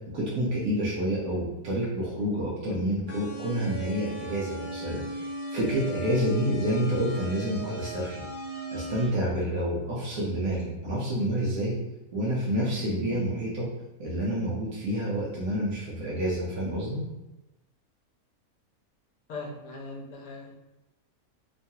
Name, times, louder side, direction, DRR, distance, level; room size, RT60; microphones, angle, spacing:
voice 1, 0.1-8.2 8.7-11.8 12.1-13.7 14.0-17.0, equal, 80° right, -7 dB, 1.2 m, -28 dB
sound 1, 3.1-9.1, right 1 dB, 55° left, 0.5 m, -38 dB
voice 2, 19.3-20.5, left 3 dB, 75° left, 0 dB, 1.0 m, -39 dB
3.1 x 2.3 x 2.7 m, 1.0 s
omnidirectional pair, 1.5 m